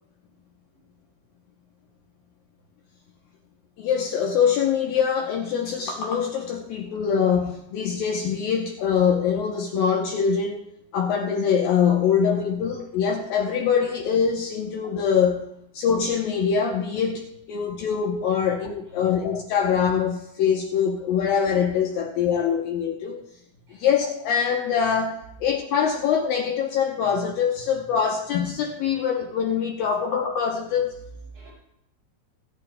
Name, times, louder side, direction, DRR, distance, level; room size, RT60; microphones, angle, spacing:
voice 1, 0.7-0.9 18.4-18.5 18.9-19.1 23.6-23.9 29.8-29.9 31.3-31.5, right 3 dB, 35° right, -4 dB, 7.2 m, -47 dB
voice 2, 3.8-10.6 10.9-15.5 15.7-23.2 23.8-31.0, left 7 dB, 70° left, 1 dB, 2.4 m, -23 dB
27.0 x 11.0 x 2.2 m, 0.78 s
omnidirectional pair, 4.6 m